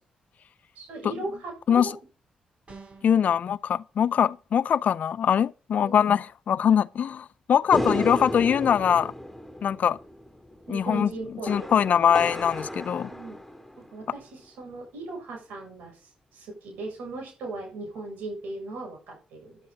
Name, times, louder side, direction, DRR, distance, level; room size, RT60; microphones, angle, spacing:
voice 1, 0.8-1.8 3.2-3.4 5.8-6.1 7.9-8.2 10.7-12.2 13.1-13.4 13.8-19.6, right 2 dB, 85° right, 7.3 m, -38 dB
sound 1, 2.7-3.2, right 3 dB, 45° right, 6.7 m, -46 dB
voice 2, 3.0-9.1 9.6-10.0 10.7-11.1 11.5-13.1, left 8 dB, 65° left, 0.5 m, -22 dB
sound 2, 7.7-14.2, left 1 dB, 5° left, 3.6 m, -34 dB
12.5 x 11.0 x 4.1 m
supercardioid pair, 55°, 3 cm